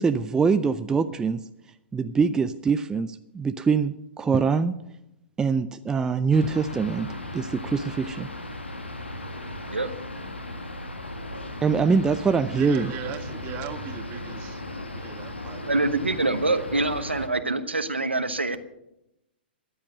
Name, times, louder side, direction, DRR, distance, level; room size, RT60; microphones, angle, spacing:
voice 1, 0.0-1.4 1.9-4.7 5.4-7.1 7.3-8.3 11.6-12.9, right 5 dB, 10° right, 10 dB, 0.5 m, -23 dB
sound 1, 6.3-17.3, left 1 dB, 85° left, 1.7 m, -37 dB
voice 2, 12.5-14.6 14.9-15.8, right 8 dB, 30° right, 7 dB, 1.7 m, -38 dB
voice 3, 15.6-18.6, right 2 dB, 85° right, 10 dB, 1.1 m, -25 dB
14.0 x 10.5 x 6.6 m, 0.85 s
figure-of-eight pair, 110°, 6 cm